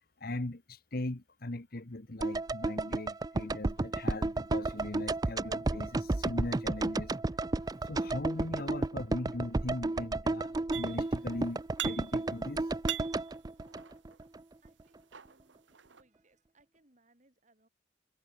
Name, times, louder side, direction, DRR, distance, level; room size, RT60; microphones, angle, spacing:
voice 1, 0.2-7.1 7.8-12.7, left 1 dB, 55° left, 1.3 m, -39 dB
sound 1, 2.2-14.4 14.7-14.8, right 2 dB, 20° right, 0.4 m, -32 dB
sound 2, 10.7-11.2 11.5-12.4 12.7-14.2 14.9-16.0, right 12 dB, 80° right, 1.3 m, -41 dB
voice 2, 14.6-15.6 15.9-17.7, right 2 dB, 40° right, 4.8 m, -68 dB
head